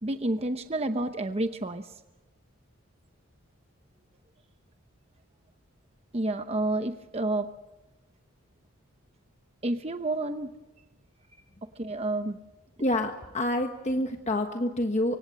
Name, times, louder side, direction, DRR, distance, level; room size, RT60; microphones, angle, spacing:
voice 1, 0.0-1.9 6.1-7.5 9.6-10.5 11.8-12.4, right 2 dB, 30° right, 8 dB, 0.9 m, -29 dB
voice 2, 12.8-15.2, left 1 dB, 30° left, 5 dB, 1.3 m, -27 dB
25.5 x 25.0 x 6.4 m, 1.1 s
head